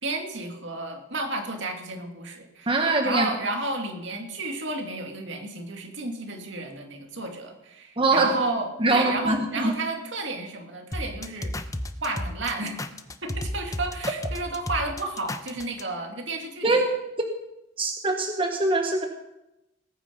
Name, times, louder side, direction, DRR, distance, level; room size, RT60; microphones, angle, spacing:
voice 1, 0.0-11.5 12.0-12.8 13.2-16.7, right 2 dB, 70° right, 3 dB, 2.5 m, -32 dB
voice 2, 2.7-3.3 8.0-8.3 8.8-9.7 16.6-16.8 17.8-19.1, right 2 dB, 30° right, 3 dB, 1.3 m, -23 dB
sound 1, 10.9-15.8, left 1 dB, 20° left, 0.8 m, -32 dB
19.5 x 9.1 x 5.3 m, 0.91 s
head